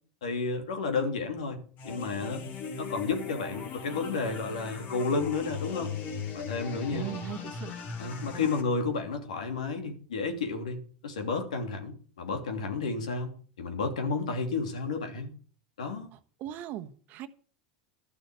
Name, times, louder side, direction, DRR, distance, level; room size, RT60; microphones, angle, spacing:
voice 1, 0.2-1.6 1.8-2.4 2.8-5.9 6.3-7.1 8.0-15.3 15.8-16.1, left 4 dB, 85° left, 6 dB, 3.0 m, -31 dB
sound 1, 1.8-8.6, left 6 dB, 50° left, 2.9 m, -39 dB
voice 2, 6.9-7.7 16.1-17.3, right 12 dB, 50° right, 11 dB, 1.2 m, -39 dB
12.5 x 6.8 x 8.2 m, 0.41 s
hypercardioid pair, 95°, 4 cm